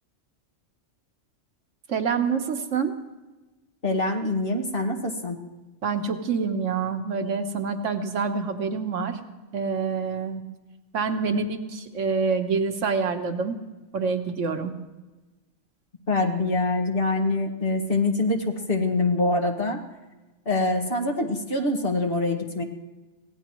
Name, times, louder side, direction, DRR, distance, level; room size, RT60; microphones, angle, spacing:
voice 1, 1.9-3.0 5.8-9.2 9.5-10.4 10.9-13.6 13.9-14.7, right 5 dB, 85° right, 6 dB, 1.5 m, -26 dB
voice 2, 3.8-5.4 16.1-19.8 20.5-22.6, left 2 dB, 50° left, 2 dB, 2.1 m, -25 dB
24.5 x 17.0 x 3.1 m, 1.2 s
omnidirectional pair, 1.2 m